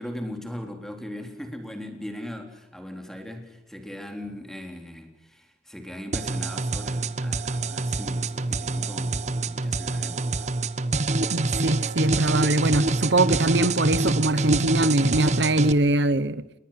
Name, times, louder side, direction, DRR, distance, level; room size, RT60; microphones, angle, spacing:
voice 1, 0.0-10.5, left 1 dB, 5° left, 3.9 m, -39 dB
sound 1, 6.1-15.7, right 3 dB, 40° right, 1.0 m, -26 dB
voice 2, 11.3-16.4, right 2 dB, 75° right, 1.0 m, -22 dB
29.0 x 22.0 x 6.0 m
head